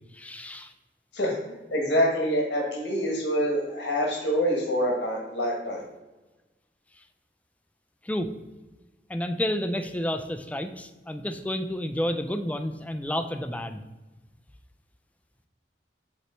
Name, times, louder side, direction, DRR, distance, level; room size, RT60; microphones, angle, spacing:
voice 1, 0.1-0.7 8.0-8.3 9.1-13.8, equal, 10° left, 8 dB, 0.4 m, -30 dB
voice 2, 1.7-5.8, equal, 80° left, -2 dB, 1.5 m, -26 dB
8.1 x 3.1 x 4.4 m, 1.1 s
head